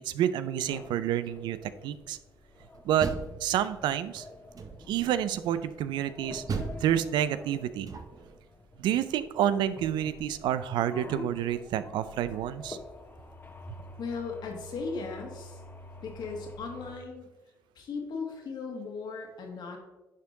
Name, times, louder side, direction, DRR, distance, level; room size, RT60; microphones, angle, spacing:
voice 1, 0.1-2.2 2.8-3.1 3.4-4.2 4.9-6.4 6.8-7.9 8.8-12.8, right 11 dB, 75° right, 13 dB, 0.4 m, -29 dB
sound 1, 0.6-17.0, left 2 dB, 25° left, 1.0 m, -48 dB
Door, 2.7-4.0 4.5-5.1 6.5-8.4, right 4 dB, 50° right, 0.9 m, -37 dB
voice 2, 14.0-15.6 16.0-17.2 17.8-19.8, left 4 dB, 65° left, 2 dB, 1.7 m, -37 dB
10.5 x 3.7 x 3.8 m, 1.1 s
supercardioid pair, 60°, 8 cm